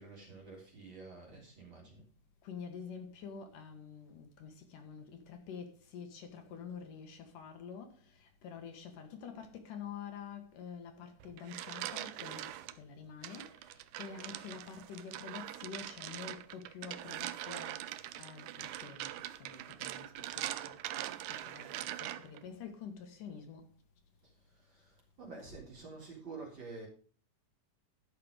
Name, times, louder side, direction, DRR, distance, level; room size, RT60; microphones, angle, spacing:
voice 1, 0.0-2.1 24.2-26.9, right 3 dB, 35° right, 4.0 m, -49 dB
voice 2, 2.4-23.7, left 6 dB, 75° left, 3.0 m, -48 dB
sound 1, 11.2-12.7 13.2-22.4, right 13 dB, 75° right, 2.0 m, -42 dB
13.5 x 5.9 x 5.1 m
omnidirectional pair, 3.9 m